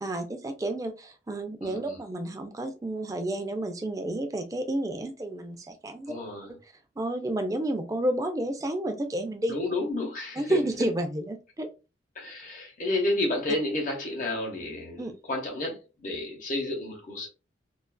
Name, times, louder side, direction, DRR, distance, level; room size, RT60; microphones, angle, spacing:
voice 1, 0.0-6.1 6.5-6.6 7.0-9.6 10.4-11.7 15.0-15.1, right 1 dB, 20° right, 0.3 m, -30 dB
voice 2, 1.6-2.0 6.1-6.5 9.5-10.6 12.1-17.3, left 2 dB, 45° left, 0.8 m, -31 dB
2.4 x 2.3 x 2.2 m
head